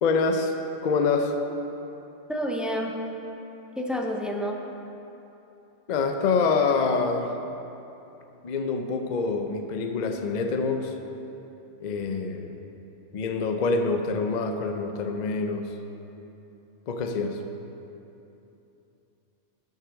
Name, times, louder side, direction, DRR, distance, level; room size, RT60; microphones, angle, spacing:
voice 1, 0.0-0.5 0.8-1.4 5.9-7.4 8.4-11.0 11.8-12.6 13.1-15.7 16.9-17.4, left 4 dB, 50° left, 5 dB, 0.6 m, -26 dB
voice 2, 2.3-3.0 3.8-4.6, equal, ahead, 1 dB, 0.5 m, -29 dB
9.1 x 6.6 x 6.3 m, 3.0 s
omnidirectional pair, 1.2 m